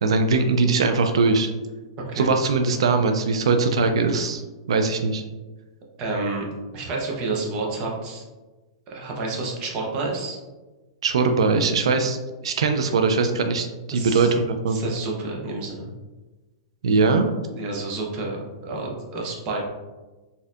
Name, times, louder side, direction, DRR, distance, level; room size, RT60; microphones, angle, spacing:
voice 1, 0.0-1.5 2.2-4.4 4.7-5.2 11.0-12.2 12.4-14.8 16.8-17.3, right 4 dB, 85° right, 6 dB, 0.3 m, -21 dB
voice 2, 2.0-2.3 6.0-6.5 6.7-8.2 8.9-10.4 13.9-14.3 14.7-15.9 17.5-19.6, right 3 dB, 30° right, -2 dB, 0.7 m, -29 dB
4.1 x 2.6 x 2.4 m, 1.2 s
supercardioid pair, 170°, 3 cm